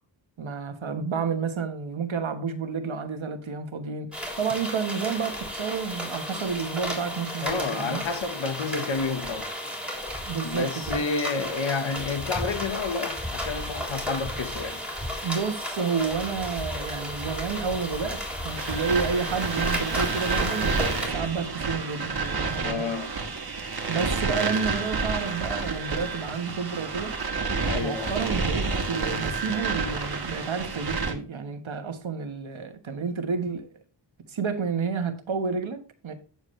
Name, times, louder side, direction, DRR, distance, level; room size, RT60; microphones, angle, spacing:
voice 1, 0.4-4.1 4.4-8.0 10.3-11.0 15.2-22.9 23.9-27.1 27.7-33.7 34.3-36.1, right 5 dB, 80° right, 1.4 m, -30 dB
sound 1, 4.1-21.1, equal, ahead, 3.4 m, -34 dB
voice 2, 7.4-9.5 10.4-14.8 22.6-23.1 27.7-28.2, left 4 dB, 80° left, 1.4 m, -30 dB
sound 2, 18.6-31.1, right 4 dB, 55° right, 1.7 m, -29 dB
9.4 x 7.1 x 3.2 m
wide cardioid pair, 85°, 46 cm